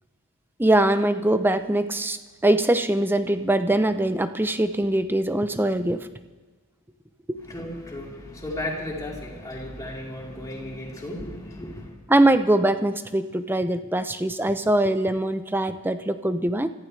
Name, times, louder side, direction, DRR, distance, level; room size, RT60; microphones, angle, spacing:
voice 1, 0.6-6.1 7.3-7.4 12.1-16.7, right 1 dB, 10° right, 10 dB, 0.7 m, -22 dB
voice 2, 7.4-11.9, left 1 dB, 15° left, -4 dB, 3.9 m, -34 dB
25.0 x 15.0 x 3.4 m, 1.3 s
head